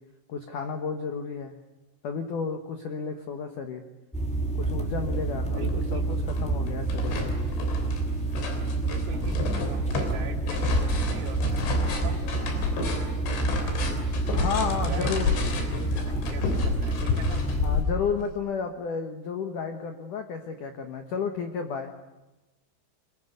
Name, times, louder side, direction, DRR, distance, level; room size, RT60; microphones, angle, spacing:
voice 1, 0.3-1.6 2.0-3.8 4.6-7.4 14.3-15.4 17.6-21.9, left 5 dB, 90° left, 6 dB, 1.8 m, -32 dB
sound 1, 4.1-17.8, right 3 dB, ahead, 2.1 m, -28 dB
sound 2, 5.2-5.3 5.7-6.4 6.7-18.3, left 4 dB, 65° left, 5.5 m, -30 dB
voice 2, 5.5-6.3 8.8-13.9 14.4-17.5, right 6 dB, 80° right, 3 dB, 5.3 m, -42 dB
24.5 x 22.0 x 9.6 m, 1.0 s
omnidirectional pair, 6.0 m